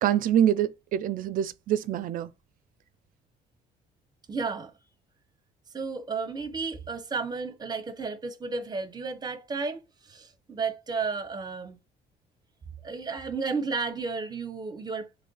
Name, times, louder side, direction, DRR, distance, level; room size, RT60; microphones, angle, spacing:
voice 1, 0.0-2.3, right 10 dB, 55° right, 0.4 m, -25 dB
voice 2, 4.3-4.7 5.7-11.8 12.8-15.1, right 4 dB, 25° right, 0.7 m, -33 dB
3.0 x 2.4 x 3.8 m
cardioid pair, 110°, 17 cm